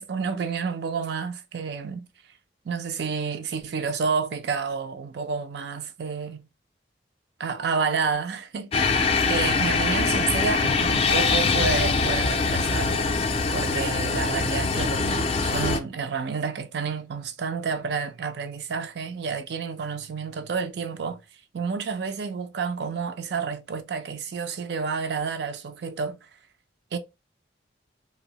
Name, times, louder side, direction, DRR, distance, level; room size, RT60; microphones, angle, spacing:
voice 1, 0.0-2.1 2.7-6.5 7.4-13.0 13.5-21.2 21.5-26.2 26.9-27.0, right 5 dB, 60° right, 0.4 m, -30 dB
sound 1, 8.7-15.8, left 4 dB, 30° left, 0.3 m, -23 dB
2.6 x 2.0 x 2.7 m
head